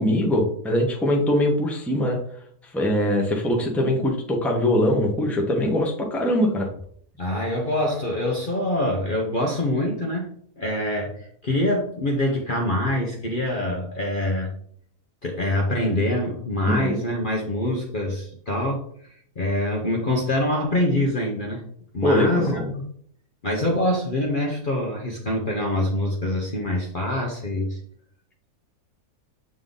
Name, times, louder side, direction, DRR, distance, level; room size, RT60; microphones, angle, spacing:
voice 1, 0.0-2.2 2.7-6.7 16.6-17.0 22.0-22.7, left 1 dB, ahead, 0 dB, 0.9 m, -22 dB
voice 2, 7.2-10.3 10.6-14.5 15.2-18.8 19.4-21.6 21.9-22.8 23.4-27.8, left 1 dB, 40° left, 0 dB, 1.0 m, -25 dB
7.5 x 3.7 x 3.9 m, 0.63 s
omnidirectional pair, 1.6 m